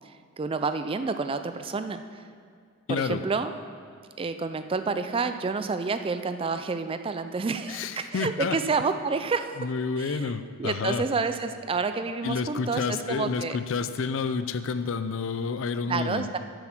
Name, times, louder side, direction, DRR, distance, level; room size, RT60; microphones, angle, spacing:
voice 1, 0.4-2.0 2.9-3.5 4.2-9.6 10.0-10.3 10.6-13.6 15.9-16.4, right 4 dB, 25° right, 9 dB, 0.3 m, -29 dB
voice 2, 2.9-3.2 7.7-8.6 9.6-11.0 12.2-16.3, left 5 dB, 60° left, 11 dB, 0.4 m, -29 dB
8.6 x 7.9 x 5.9 m, 2.1 s
head